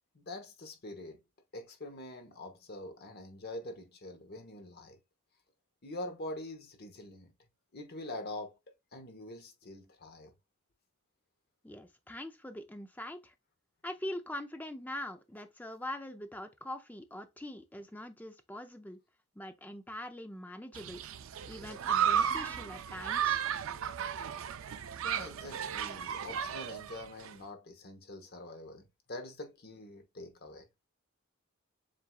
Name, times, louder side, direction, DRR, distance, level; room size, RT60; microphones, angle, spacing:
voice 1, 0.1-1.2 1.5-5.0 5.8-7.3 7.7-8.6 8.9-10.3 21.6-21.7 25.0-30.7, left 1 dB, 45° left, 1.0 m, -45 dB
voice 2, 11.6-13.3 13.8-19.0 19.4-21.0 21.5-23.4, left 1 dB, 10° left, 0.4 m, -43 dB
Human group actions, 20.7-27.3, right 8 dB, 60° right, 0.4 m, -34 dB
7.5 x 2.6 x 2.3 m
head